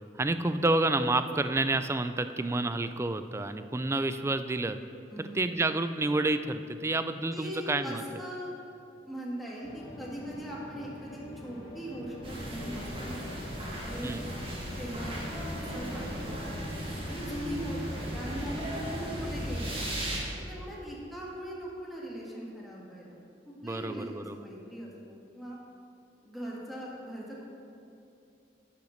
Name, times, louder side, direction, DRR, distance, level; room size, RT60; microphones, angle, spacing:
voice 1, 0.2-4.8 5.2-8.0 14.0-14.3 23.6-24.4, right 2 dB, 15° right, 10 dB, 0.3 m, -29 dB
voice 2, 5.1-5.5 7.3-8.5 9.1-13.2 13.8-14.2 14.8-15.3 15.6-16.6 17.1-19.8 20.3-23.2 23.6-25.6 26.2-27.5, equal, ahead, -5 dB, 1.8 m, -40 dB
sound 1, 9.6-19.9, equal, 25° left, 1.2 m, -46 dB
sound 2, 12.2-20.2, equal, 30° right, 2.0 m, -36 dB
10.5 x 5.9 x 6.5 m, 2.6 s
head